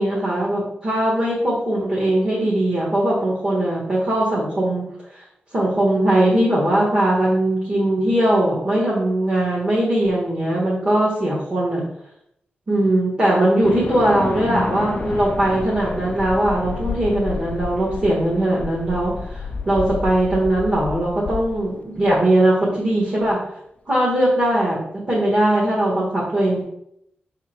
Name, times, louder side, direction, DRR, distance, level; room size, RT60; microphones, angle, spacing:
voice 1, 0.0-4.9 5.5-11.8 12.7-23.4 23.9-24.8 25.1-26.6, right 1 dB, 30° right, -5 dB, 1.5 m, -20 dB
sound 1, 13.6-22.1, left 4 dB, 35° left, 0.4 m, -30 dB
6.4 x 3.6 x 4.4 m, 0.75 s
wide cardioid pair, 175°, 4 cm